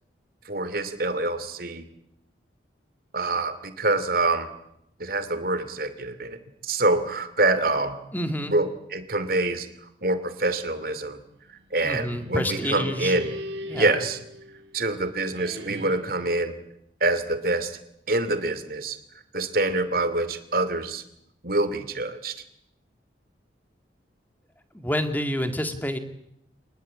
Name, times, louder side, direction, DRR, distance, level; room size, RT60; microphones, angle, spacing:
voice 1, 0.5-1.8 3.1-4.5 5.0-8.0 8.5-9.7 10.0-11.2 11.7-13.3 13.8-14.2 14.7-16.6 17.0-17.7 18.1-19.0 19.3-21.0 21.4-22.3, right 2 dB, 50° right, 11 dB, 2.7 m, -26 dB
voice 2, 8.1-8.5 11.8-13.1 13.7-13.9 24.7-26.0, equal, 10° left, 8 dB, 2.1 m, -28 dB
sound 1, 11.9-14.9 15.3-16.3, equal, 90° right, 4.0 m, -38 dB
26.5 x 20.5 x 8.8 m, 0.77 s
head